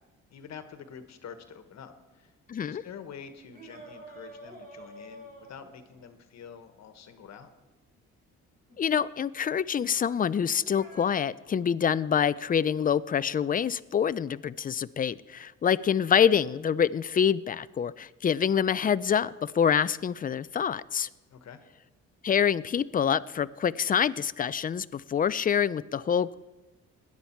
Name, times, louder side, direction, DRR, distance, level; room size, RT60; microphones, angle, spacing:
voice 1, 0.3-2.3 2.6-7.5 21.3-21.6, left 7 dB, 60° left, 8 dB, 1.3 m, -47 dB
voice 2, 2.5-2.8 8.8-21.1 22.2-26.4, left 8 dB, 30° left, 17 dB, 0.4 m, -26 dB
sound 1, 3.5-6.1 8.7-8.8 10.4-11.1, right 1 dB, 30° right, 4.8 m, -47 dB
17.0 x 10.5 x 4.5 m, 1.1 s
cardioid pair, 90°, 30 cm